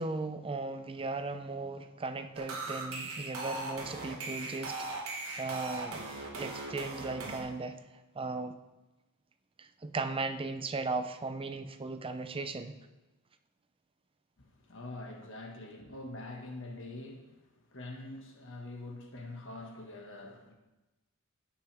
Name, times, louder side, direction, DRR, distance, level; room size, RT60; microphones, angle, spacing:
voice 1, 0.0-6.0 6.4-7.8 8.2-8.6 9.6-12.7, right 3 dB, 25° right, 9 dB, 0.5 m, -37 dB
sound 1, 2.4-7.4, right 2 dB, 70° right, 1.8 m, -39 dB
voice 2, 14.4-20.5, left 2 dB, 60° left, 2 dB, 1.7 m, -45 dB
16.5 x 6.0 x 3.5 m, 1.0 s
head